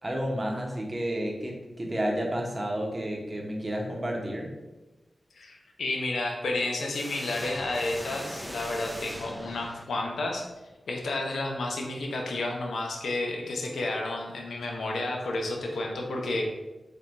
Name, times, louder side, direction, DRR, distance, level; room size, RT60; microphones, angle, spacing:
voice 1, 0.0-4.5, equal, 35° right, 0 dB, 0.8 m, -31 dB
voice 2, 5.3-10.5 10.9-16.5, left 2 dB, 90° left, 0 dB, 0.6 m, -31 dB
sound 1, 6.9-10.3, equal, 5° right, 0.5 m, -40 dB
3.5 x 2.2 x 4.0 m, 1.1 s
cardioid pair, 45°, 0 cm